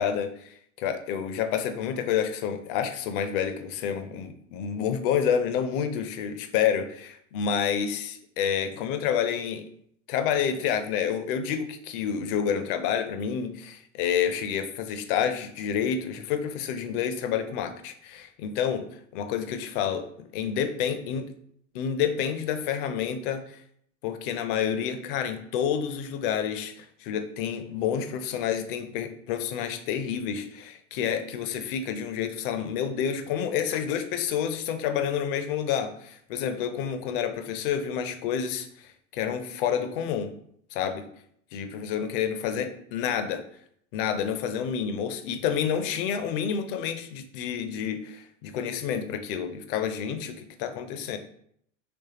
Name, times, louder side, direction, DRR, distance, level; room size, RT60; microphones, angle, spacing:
voice 1, 0.0-9.7 10.1-21.3 21.7-23.6 24.0-40.3 40.7-41.1 41.5-43.5 43.9-51.2, left 8 dB, 45° left, 9 dB, 0.5 m, -29 dB
3.5 x 3.1 x 2.8 m, 0.68 s
figure-of-eight pair, 75°, 38 cm